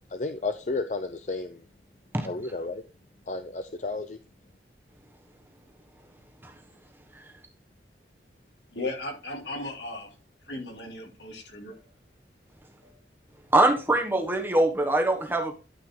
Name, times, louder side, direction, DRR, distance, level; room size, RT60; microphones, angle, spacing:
voice 1, 0.1-1.6 2.2-2.8 3.3-4.2, left 3 dB, 45° left, 8 dB, 0.6 m, -32 dB
voice 2, 8.7-10.1 10.5-11.9 12.8-13.0, left 2 dB, 85° left, 0 dB, 3.2 m, -36 dB
voice 3, 13.5-15.6, right 2 dB, 10° right, 5 dB, 1.3 m, -23 dB
12.0 x 5.2 x 3.8 m, 0.33 s
head